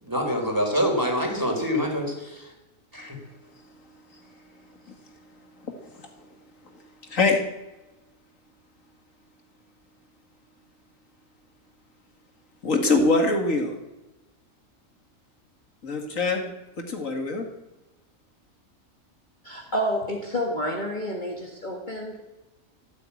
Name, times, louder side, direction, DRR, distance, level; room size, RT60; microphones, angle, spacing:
voice 1, 0.0-2.5 2.9-3.2, equal, 15° right, 1 dB, 4.1 m, -26 dB
voice 2, 7.1-7.4 12.6-13.8 15.8-17.5, left 3 dB, 70° left, 4 dB, 2.3 m, -23 dB
voice 3, 19.4-22.2, equal, 35° left, 0 dB, 2.0 m, -29 dB
13.0 x 13.0 x 8.5 m, 1.0 s
omnidirectional pair, 1.4 m